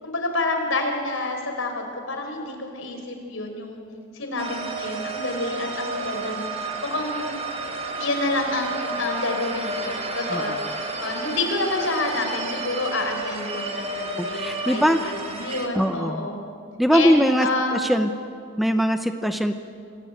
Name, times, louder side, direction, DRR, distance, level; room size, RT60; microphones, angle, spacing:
voice 1, 0.0-3.8 4.1-7.3 8.0-10.5 11.0-16.4 16.9-17.8, left 2 dB, 75° left, 4 dB, 4.6 m, -28 dB
sound 1, 4.4-15.7, right 2 dB, 30° right, 2.3 m, -31 dB
voice 2, 14.2-15.1 15.7-16.3 16.8-18.1 18.6-19.5, equal, ahead, 8 dB, 0.7 m, -21 dB
26.5 x 19.0 x 9.1 m, 2.4 s
head